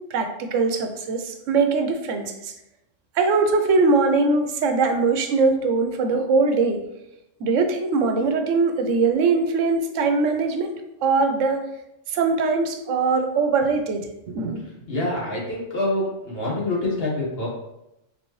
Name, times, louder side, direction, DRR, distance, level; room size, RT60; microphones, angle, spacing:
voice 1, 0.1-2.5 3.2-6.8 7.4-10.7 11.0-11.6 12.1-14.6, right 4 dB, 85° right, 6 dB, 1.0 m, -21 dB
voice 2, 14.9-17.5, left 1 dB, 55° left, -4 dB, 1.5 m, -26 dB
4.0 x 3.7 x 3.1 m, 0.87 s
omnidirectional pair, 1.3 m